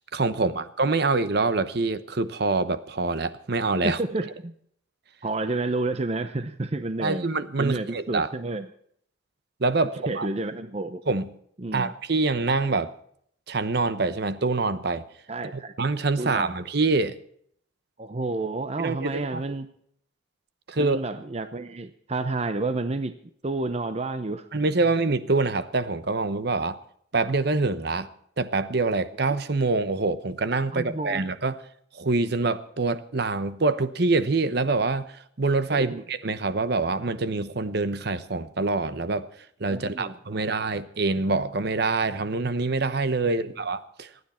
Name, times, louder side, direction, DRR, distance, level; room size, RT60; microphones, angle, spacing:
voice 1, 0.1-4.0 7.0-8.3 9.6-10.3 11.1-11.3 11.7-12.9 13.5-15.0 15.5-17.1 18.8-19.6 20.7-21.0 24.5-26.8 27.1-28.1 28.4-31.6 31.9-39.3 39.6-44.1, right 3 dB, 55° right, 13 dB, 0.9 m, -25 dB
voice 2, 3.8-4.5 5.2-7.3 7.6-8.7 10.1-11.0 11.6-11.9 15.3-15.7 16.2-16.6 18.0-19.7 20.8-23.1 23.4-24.5 30.7-31.2 35.7-36.0 39.7-40.7 43.2-43.5, right 2 dB, 35° right, 10 dB, 0.7 m, -30 dB
26.5 x 9.7 x 4.3 m, 0.65 s
head